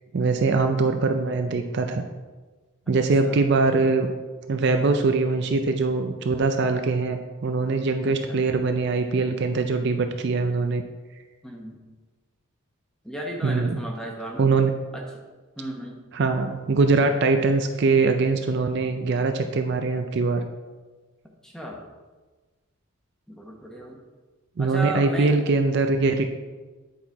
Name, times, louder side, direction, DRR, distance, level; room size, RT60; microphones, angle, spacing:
voice 1, 0.1-2.0 2.9-4.1 4.5-10.8 13.4-13.8 14.4-14.7 16.1-20.4 24.6-26.2, right 3 dB, 50° right, 6 dB, 0.4 m, -22 dB
voice 2, 2.9-3.4 8.1-8.4 11.4-11.8 13.0-14.4 14.9-15.2 15.6-16.0 21.4-21.8 23.3-24.0 24.6-25.4, right 1 dB, 5° left, 0 dB, 1.0 m, -35 dB
9.3 x 4.3 x 4.6 m, 1.3 s
head